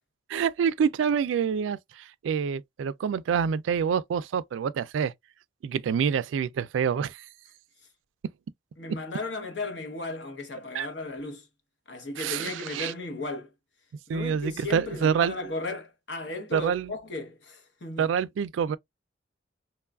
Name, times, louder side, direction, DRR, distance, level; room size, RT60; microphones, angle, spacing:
voice 1, 0.3-5.1 5.6-7.3 10.7-10.9 12.2-12.9 14.1-15.3 16.5-16.9 18.0-18.8, right 7 dB, 85° right, 0.3 m, -27 dB
voice 2, 8.8-11.5 11.9-13.5 14.1-18.1, left 2 dB, 65° left, 0.9 m, -35 dB
3.0 x 2.3 x 2.2 m
head